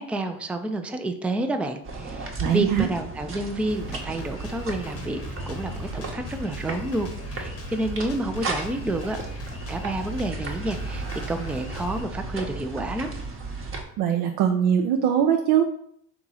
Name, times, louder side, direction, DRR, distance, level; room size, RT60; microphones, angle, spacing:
voice 1, 0.0-5.2 5.5-9.2 9.7-13.1, right 1 dB, 5° right, 7 dB, 0.3 m, -29 dB
sound 1, 1.8-13.8, right 3 dB, 35° right, 1.0 m, -34 dB
voice 2, 2.4-2.9 14.0-15.7, right 9 dB, 70° right, 4 dB, 0.5 m, -21 dB
Drum kit, 3.7-12.0, left 3 dB, 40° left, 0.8 m, -42 dB
3.7 x 3.0 x 3.9 m, 0.69 s
supercardioid pair, 75°, 37 cm